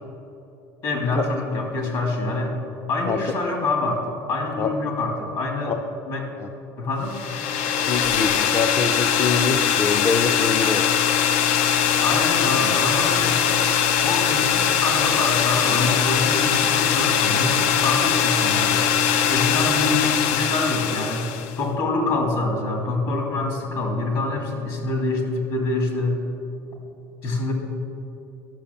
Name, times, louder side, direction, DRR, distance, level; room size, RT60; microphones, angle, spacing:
voice 1, 0.8-2.6 2.9-5.7 6.1-6.3 6.8-7.2 11.9-13.4 14.0-18.8 19.3-21.3 21.6-26.2 27.2-27.5, left 2 dB, 55° left, 1 dB, 2.6 m, -25 dB
sound 1, 7.1-21.6, left 8 dB, 85° left, 0.5 m, -21 dB
voice 2, 7.8-10.9, left 5 dB, 35° left, 6 dB, 0.5 m, -25 dB
11.5 x 6.8 x 7.1 m, 2.9 s
cardioid pair, 140°, 8 cm